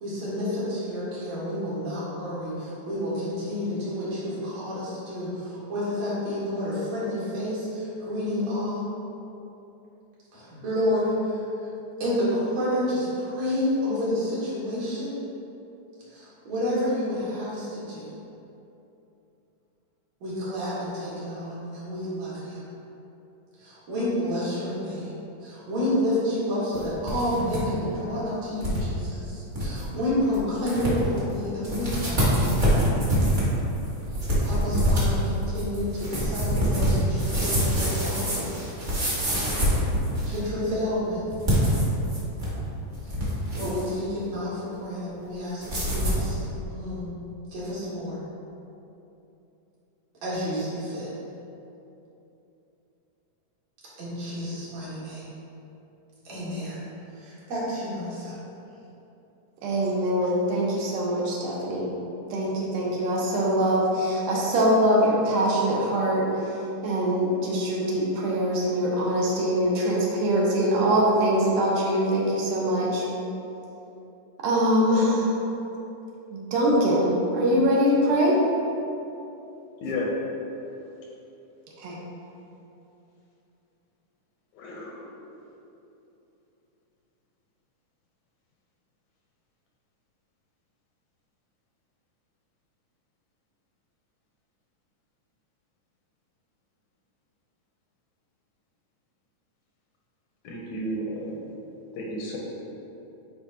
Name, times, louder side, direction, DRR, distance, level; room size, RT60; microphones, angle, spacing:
voice 1, 0.0-8.8 10.3-11.4 12.0-15.1 16.1-18.1 20.2-22.6 23.6-25.1 25.4-32.5 34.4-38.5 40.3-41.2 43.2-46.4 46.7-47.1 47.5-48.2 50.2-51.1 54.0-55.3 56.2-56.8 57.2-58.4, left 1 dB, 60° right, -9 dB, 2.6 m, -29 dB
sound 1, 26.7-27.6 27.9-28.0 28.6-28.8 29.2-29.3 29.5-29.8 30.3-30.4 30.7-31.2 31.6-40.5 41.3-42.6 42.9-43.9 45.6-46.3, equal, 35° right, 1.1 m, -25 dB
voice 2, 59.6-61.9 62.3-66.6 66.8-73.0 74.4-75.3 76.3-78.4 81.8-82.0, equal, 75° right, -3 dB, 2.3 m, -23 dB
voice 3, 79.8-80.1 84.5-85.2 100.4-101.4 101.9-102.4, left 1 dB, 75° left, -3 dB, 1.8 m, -32 dB
9.4 x 4.0 x 2.8 m, 2.9 s
omnidirectional pair, 3.7 m